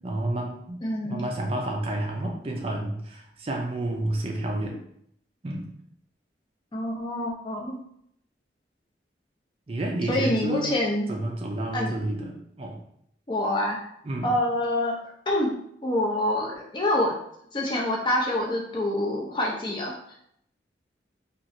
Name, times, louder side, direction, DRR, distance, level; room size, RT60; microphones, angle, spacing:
voice 1, 0.0-4.8 5.4-5.7 9.7-10.8 11.1-12.8 14.0-14.3, right 1 dB, 30° right, 0 dB, 0.4 m, -30 dB
voice 2, 0.8-1.2 6.7-7.8 10.1-11.1 11.7-11.9 13.3-13.8 14.2-14.9 15.3-15.5 15.8-17.1 17.5-20.2, left 1 dB, 25° left, -2 dB, 0.5 m, -26 dB
2.9 x 2.4 x 2.6 m, 0.71 s
head